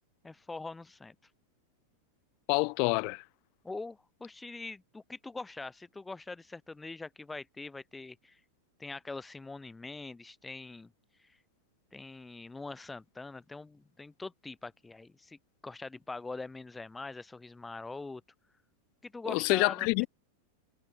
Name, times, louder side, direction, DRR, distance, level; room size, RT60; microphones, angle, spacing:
voice 1, 0.2-1.2 3.6-8.4 8.8-10.9 11.2-11.4 11.9-18.2 19.0-20.1, left 3 dB, 10° left, 1.8 m, -43 dB
voice 2, 2.5-3.2 19.3-20.1, left 39 dB, 45° left, 1.3 m, -27 dB
figure-of-eight pair, 90°, 0 cm